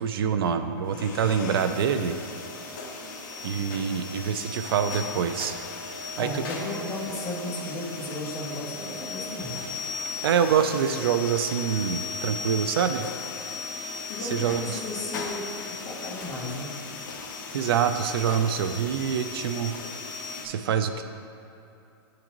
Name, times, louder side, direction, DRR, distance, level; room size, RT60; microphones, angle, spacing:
voice 1, 0.0-2.2 3.4-5.5 6.2-6.4 10.2-13.1 14.3-14.6 17.5-19.8 20.4-21.0, right 7 dB, 70° right, 9 dB, 0.4 m, -25 dB
sound 1, 0.8-20.5, left 4 dB, 50° left, 0.9 m, -36 dB
voice 2, 5.9-9.6 14.1-16.7, left 2 dB, 25° left, -4 dB, 1.2 m, -35 dB
10.5 x 3.8 x 3.0 m, 2.7 s
supercardioid pair, 160°, 13 cm